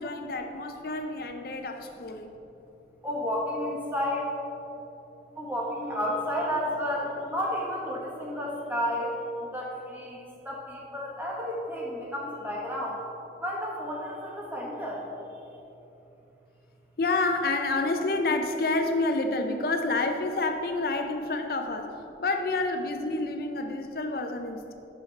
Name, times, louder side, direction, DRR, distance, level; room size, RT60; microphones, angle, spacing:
voice 1, 0.0-2.3 17.0-21.9 22.2-24.7, left 2 dB, 55° left, 5 dB, 0.5 m, -28 dB
voice 2, 3.0-4.3 5.4-9.1 9.5-13.0 13.4-15.0, equal, 10° right, -3 dB, 1.2 m, -31 dB
11.5 x 5.2 x 4.0 m, 3.0 s
head